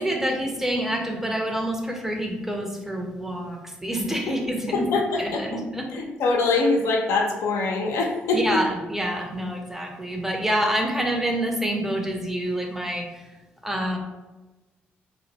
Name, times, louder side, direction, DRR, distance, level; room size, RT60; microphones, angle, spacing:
voice 1, 0.0-4.9 5.2-5.9 8.3-13.3 13.6-14.0, right 1 dB, 5° right, 1 dB, 0.6 m, -27 dB
voice 2, 4.7-5.4 5.9-8.6, left 3 dB, 70° left, 0 dB, 0.4 m, -23 dB
2.5 x 2.0 x 2.8 m, 1.1 s
hypercardioid pair, 45°, 5 cm